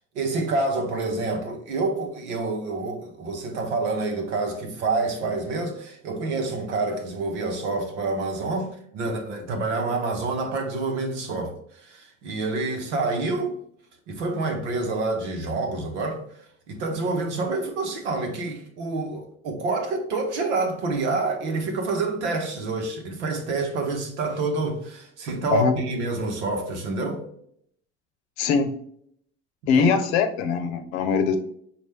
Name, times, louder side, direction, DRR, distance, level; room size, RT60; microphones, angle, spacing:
voice 1, 0.1-13.5 14.1-16.2 16.7-27.2 29.8-30.0, right 3 dB, 80° right, 1.0 m, -27 dB
voice 2, 28.4-28.7 29.7-31.4, left 5 dB, 75° left, 0.7 m, -22 dB
5.3 x 2.5 x 3.3 m
hypercardioid pair, 70°, 34 cm